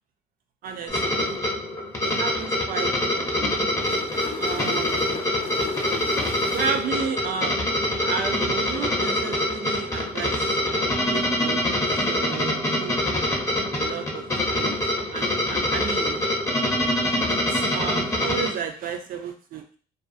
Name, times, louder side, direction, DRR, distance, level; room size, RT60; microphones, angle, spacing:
voice 1, 0.6-1.4 2.0-3.7 4.4-5.2 6.5-11.6 12.1-12.5 12.8-12.9 13.8-14.8 15.1-16.2 17.3-19.8, right 6 dB, 55° right, 6 dB, 0.5 m, -33 dB
sound 1, 0.9-18.5, left 1 dB, 15° left, 0.6 m, -25 dB
sound 2, 3.5-7.2 11.0-11.2, left 5 dB, 60° left, 0.6 m, -36 dB
2.4 x 2.3 x 2.5 m, 0.41 s
cardioid pair, 110°, 17 cm